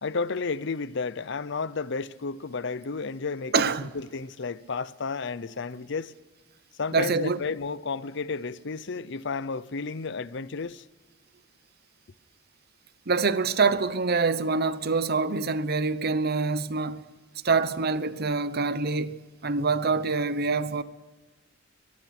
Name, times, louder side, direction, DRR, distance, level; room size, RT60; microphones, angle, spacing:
voice 1, 0.0-6.1 6.8-10.8, left 4 dB, 65° left, 0.7 m, -32 dB
voice 2, 3.5-3.9 6.9-7.4 13.1-17.0 17.4-20.8, right 4 dB, 55° right, 0.9 m, -25 dB
23.0 x 20.5 x 6.0 m
head